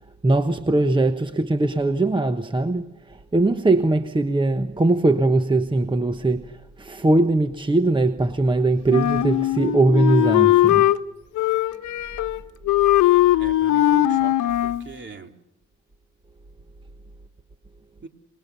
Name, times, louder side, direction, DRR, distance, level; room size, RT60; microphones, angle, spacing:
voice 1, 0.2-10.9, right 2 dB, 15° right, 1.2 m, -21 dB
Wind instrument woodwind instrument, 8.9-11.0 11.4-12.4 12.7-14.9, left 14 dB, 85° left, 1.0 m, -19 dB
voice 2, 13.4-15.3 18.0-18.1, right 4 dB, 40° right, 3.1 m, -39 dB
26.0 x 21.0 x 6.9 m
cardioid pair, 90°, 30 cm